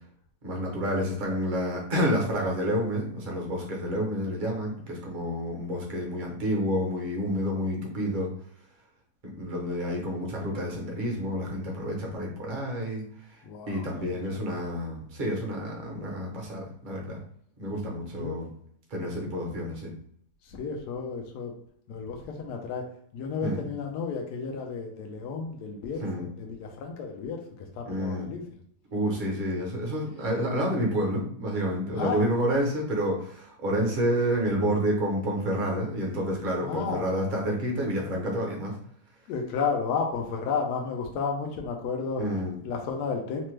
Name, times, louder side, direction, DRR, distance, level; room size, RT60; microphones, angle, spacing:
voice 1, 0.4-8.3 9.4-13.4 13.7-17.2 17.6-18.5 18.9-19.9 23.4-23.7 26.0-26.3 27.9-28.3 28.9-38.7 42.2-42.6, equal, 40° right, -1 dB, 0.8 m, -29 dB
voice 2, 13.4-13.9 14.1-14.6 18.2-18.4 20.5-21.5 21.9-22.9 23.1-27.4 27.8-28.4 32.0-32.2 36.6-37.1 39.3-42.2 42.6-43.5, left 5 dB, 80° left, 2 dB, 1.1 m, -32 dB
3.2 x 2.1 x 3.1 m, 0.65 s
omnidirectional pair, 1.7 m